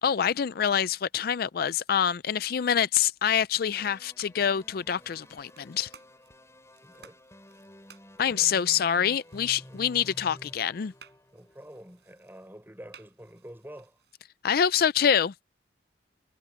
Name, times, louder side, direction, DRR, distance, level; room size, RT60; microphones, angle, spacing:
voice 1, 0.0-5.9 8.2-10.9 14.4-15.4, left 8 dB, 55° left, 0.4 m, -26 dB
sound 1, 3.4-14.2, right 7 dB, 65° right, 6.8 m, -59 dB
sound 2, 3.8-12.0, equal, 15° left, 6.0 m, -52 dB
voice 2, 6.8-7.2 8.2-8.5 9.7-10.2 11.3-14.0, equal, 10° right, 5.5 m, -48 dB
head